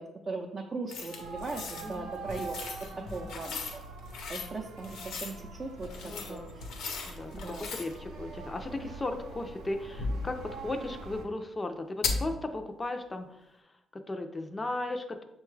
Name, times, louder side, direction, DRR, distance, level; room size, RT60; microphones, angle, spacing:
voice 1, 0.0-3.8 4.3-6.6 7.3-7.7, right 3 dB, 40° right, 0 dB, 0.5 m, -39 dB
sound 1, 0.9-1.9 2.3-4.5 4.8-5.4 5.8-7.9 10.0-10.4 12.0-12.4, left 4 dB, 85° left, 0.7 m, -37 dB
sound 2, 1.1-11.2, right 3 dB, 90° right, 0.5 m, -45 dB
voice 2, 6.0-6.5 7.1-13.6 13.9-15.2, left 2 dB, 20° left, 6 dB, 0.4 m, -36 dB
6.5 x 2.3 x 3.2 m, 0.92 s
cardioid pair, 90°, 0 cm